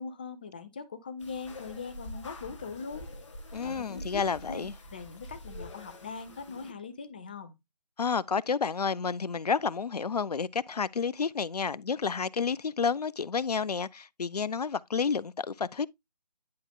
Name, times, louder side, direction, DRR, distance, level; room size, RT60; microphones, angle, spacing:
voice 1, 0.0-3.1 3.6-7.6, left 5 dB, 15° left, 0.4 m, -41 dB
sound 1, 1.2-6.7, equal, 45° left, 1.5 m, -45 dB
voice 2, 3.5-4.7 8.0-15.9, left 5 dB, 70° left, 0.5 m, -30 dB
10.5 x 5.0 x 2.2 m
figure-of-eight pair, 150°, 21 cm